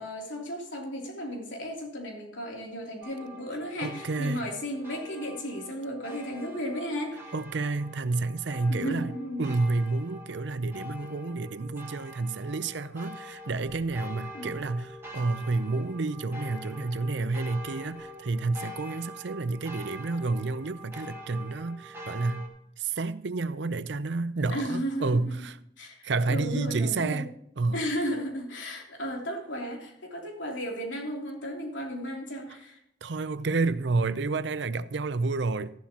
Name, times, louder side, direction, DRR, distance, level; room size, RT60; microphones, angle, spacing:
voice 1, 0.0-7.3 8.7-9.6 14.3-14.5 24.5-25.3 25.8-27.2 27.7-32.8, equal, 85° left, 3.1 m, -34 dB
sound 1, 3.0-22.5, equal, 15° right, 2.2 m, -45 dB
voice 2, 3.8-4.5 7.3-9.1 9.4-22.5 22.8-25.6 26.0-27.3 27.6-27.8 33.0-35.7, right 3 dB, 70° right, 0.6 m, -30 dB
13.5 x 11.5 x 2.9 m
head